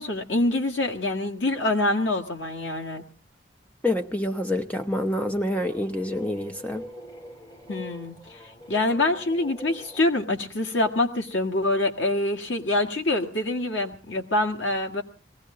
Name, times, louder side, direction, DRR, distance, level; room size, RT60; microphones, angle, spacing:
voice 1, 0.0-3.0 7.7-8.1 8.7-15.0, left 2 dB, 75° left, 1.7 m, -25 dB
voice 2, 3.8-6.9, left 1 dB, 10° left, 0.8 m, -27 dB
sound 1, 5.5-10.1, equal, 25° left, 2.5 m, -44 dB
20.0 x 15.5 x 3.8 m
head